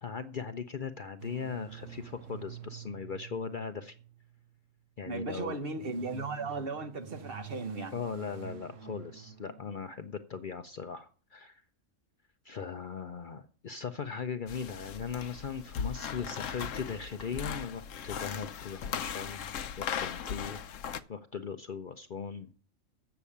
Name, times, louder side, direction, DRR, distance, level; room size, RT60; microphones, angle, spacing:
voice 1, 0.0-4.0 5.0-5.6 7.9-11.6 12.4-20.6 21.1-22.5, left 6 dB, 50° left, 0.7 m, -39 dB
sound 1, 1.2-4.6 5.5-10.3, right 7 dB, 75° right, 1.1 m, -48 dB
voice 2, 5.1-7.9, right 3 dB, 50° right, 1.1 m, -36 dB
sound 2, 14.5-21.0, left 7 dB, 75° left, 1.0 m, -38 dB
8.2 x 6.8 x 8.5 m
omnidirectional pair, 1.4 m